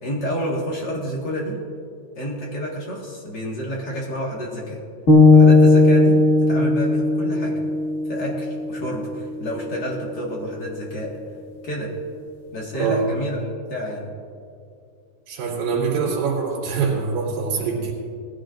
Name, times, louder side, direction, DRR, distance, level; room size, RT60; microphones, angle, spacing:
voice 1, 0.0-1.6 2.2-4.8 5.3-7.6 8.1-11.1 11.6-11.9 12.5-14.1, equal, 40° left, -3 dB, 1.6 m, -29 dB
sound 1, 5.1-9.2, left 3 dB, 65° left, 0.7 m, -16 dB
voice 2, 12.7-13.1 15.3-17.9, right 5 dB, 80° right, -6 dB, 4.5 m, -24 dB
19.5 x 15.5 x 2.6 m, 2.4 s
omnidirectional pair, 4.5 m